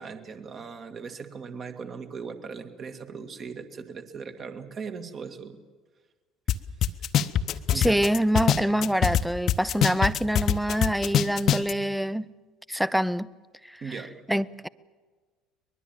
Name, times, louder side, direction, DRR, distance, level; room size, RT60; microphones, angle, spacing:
voice 1, 0.0-5.6 7.7-8.0 13.8-14.1, right 5 dB, 35° right, 2.1 m, -38 dB
sound 1, 6.5-6.6 6.8-9.2 9.5-11.7, left 10 dB, 45° left, 0.9 m, -22 dB
voice 2, 7.7-12.3 12.7-13.3 14.3-14.7, equal, ahead, 0.6 m, -25 dB
23.5 x 21.0 x 7.4 m
figure-of-eight pair, 60°, 0 cm